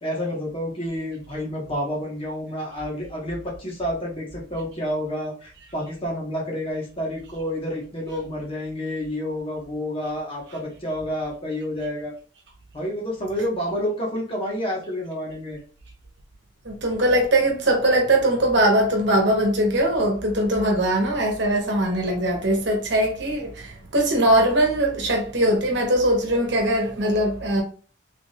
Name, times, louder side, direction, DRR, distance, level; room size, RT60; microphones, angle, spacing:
voice 1, 0.0-12.1 12.7-15.6, equal, 30° left, 1.3 m, -29 dB
voice 2, 16.6-27.6, right 1 dB, 65° right, 1.1 m, -21 dB
3.7 x 3.5 x 2.4 m
head